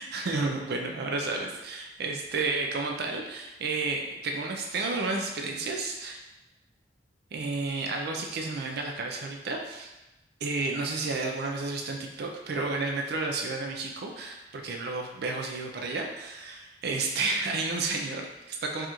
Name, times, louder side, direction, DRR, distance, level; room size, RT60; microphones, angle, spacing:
voice 1, 0.0-6.2 7.3-9.9 10.4-18.9, right 3 dB, 60° right, 2 dB, 0.4 m, -31 dB
4.6 x 2.4 x 2.9 m, 1.0 s
head